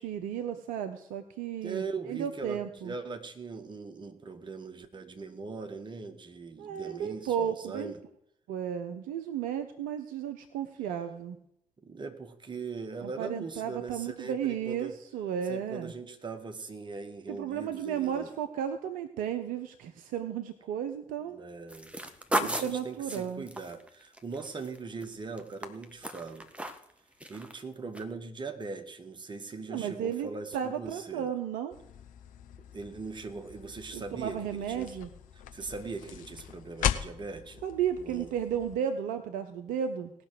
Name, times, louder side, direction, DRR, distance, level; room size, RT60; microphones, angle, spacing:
voice 1, 0.0-2.9 6.6-7.9 8.5-11.4 13.0-15.9 17.3-21.4 22.4-23.4 29.7-31.7 33.9-35.1 37.6-40.1, right 9 dB, 60° right, 8 dB, 0.9 m, -34 dB
voice 2, 1.6-8.0 11.8-15.0 15.5-18.3 21.3-21.9 22.3-26.5 27.3-31.3 32.7-35.0 35.5-37.6 38.0-38.3, right 4 dB, 30° right, 5 dB, 1.9 m, -40 dB
sound 1, 21.7-25.0 25.4-26.9 27.2-27.6 27.9-28.0, right 1 dB, 5° right, 1.7 m, -35 dB
sound 2, 31.7-38.8, left 9 dB, 60° left, 1.0 m, -38 dB
18.0 x 6.0 x 7.9 m, 0.74 s
figure-of-eight pair, 45°, 16 cm